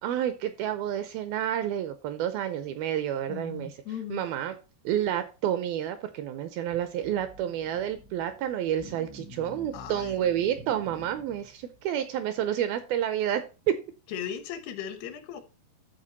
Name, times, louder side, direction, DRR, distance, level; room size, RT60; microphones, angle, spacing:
voice 1, 0.0-3.8 4.1-4.6 4.8-13.8, right 10 dB, 80° right, 2.3 m, -29 dB
voice 2, 3.3-4.2 9.7-10.2 14.1-15.4, left 8 dB, 75° left, 3.0 m, -37 dB
sound 1, 6.6-11.8, equal, 55° right, 0.8 m, -48 dB
12.5 x 4.5 x 4.0 m
omnidirectional pair, 4.8 m